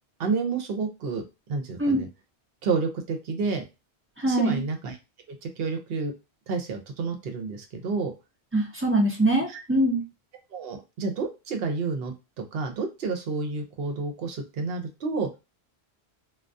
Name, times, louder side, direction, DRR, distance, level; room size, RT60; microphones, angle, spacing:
voice 1, 0.2-1.2 1.5-2.1 2.6-3.6 4.2-5.0 5.3-6.1 6.5-8.1 9.5-9.6 10.5-12.1 12.5-15.3, right 4 dB, 65° right, 4 dB, 0.8 m, -30 dB
voice 2, 4.2-4.6 8.5-10.0, right 1 dB, 20° right, -1 dB, 0.3 m, -23 dB
2.3 x 2.2 x 2.5 m, 0.26 s
omnidirectional pair, 1.1 m